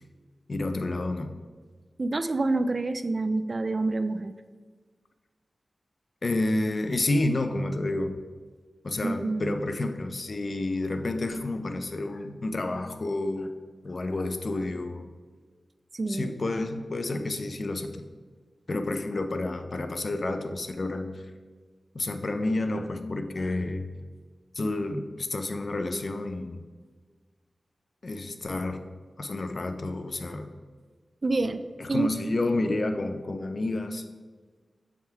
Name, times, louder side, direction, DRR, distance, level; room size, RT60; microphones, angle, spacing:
voice 1, 0.5-1.3 6.2-8.2 8.8-13.5 13.8-15.1 16.1-18.0 18.7-21.2 21.9-23.9 24.5-26.6 28.0-28.8 29.2-30.5 31.8-34.0, left 2 dB, 60° left, 8 dB, 0.6 m, -30 dB
voice 2, 2.0-4.3 9.0-9.6 15.9-16.3 31.2-31.6 31.9-32.1, right 2 dB, 50° right, 11 dB, 0.4 m, -27 dB
7.7 x 3.6 x 4.6 m, 1.5 s
cardioid pair, 50°, 0 cm